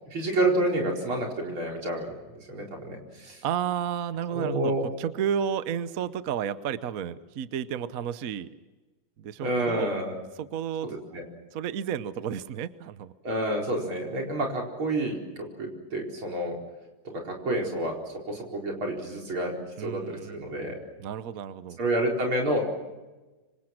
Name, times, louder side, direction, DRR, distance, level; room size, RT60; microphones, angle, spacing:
voice 1, 0.1-3.4 4.3-4.9 9.4-10.2 10.8-11.2 13.2-16.6 17.1-18.0 18.3-20.8 21.8-22.6, right 1 dB, 90° right, 0 dB, 5.4 m, -29 dB
voice 2, 3.4-8.5 9.2-9.9 10.4-10.9 11.5-13.1 13.6-13.9 19.8-21.8, right 8 dB, 55° right, 14 dB, 1.1 m, -32 dB
26.5 x 25.5 x 6.0 m, 1.2 s
omnidirectional pair, 2.2 m